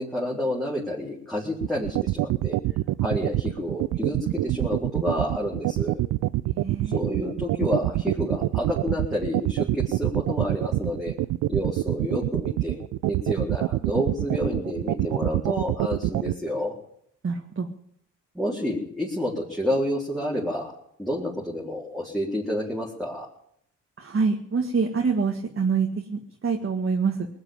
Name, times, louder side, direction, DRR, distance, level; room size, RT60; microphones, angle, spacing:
voice 1, 0.0-2.6 3.0-6.0 6.8-11.1 11.5-12.8 13.1-16.7 18.3-20.7 21.0-23.3, equal, ahead, -5 dB, 4.0 m, -29 dB
sound 1, 1.6-16.3, right 17 dB, 75° right, 0.5 m, -25 dB
voice 2, 6.5-7.0 17.2-17.7 24.0-27.3, right 5 dB, 40° right, 2 dB, 1.9 m, -26 dB
19.0 x 8.2 x 9.0 m, 0.70 s
supercardioid pair, 60°, 32 cm